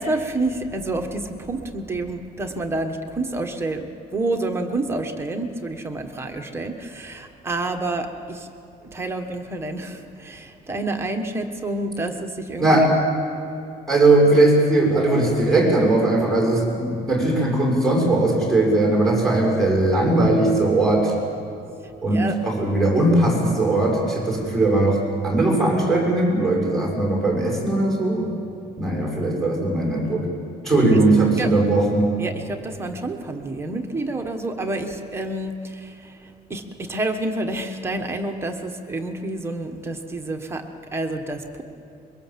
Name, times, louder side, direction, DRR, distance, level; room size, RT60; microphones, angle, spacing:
voice 1, 0.0-8.5 8.8-13.0 22.1-22.4 30.9-31.0 31.4-31.5 32.2-41.6, right 2 dB, 15° right, 4 dB, 1.3 m, -29 dB
voice 2, 12.6-12.9 13.9-21.1 22.0-28.3 28.8-30.3 30.6-32.1, right 2 dB, 5° left, -2 dB, 6.4 m, -19 dB
24.5 x 22.5 x 7.6 m, 2.7 s
cardioid pair, 175°, 18 cm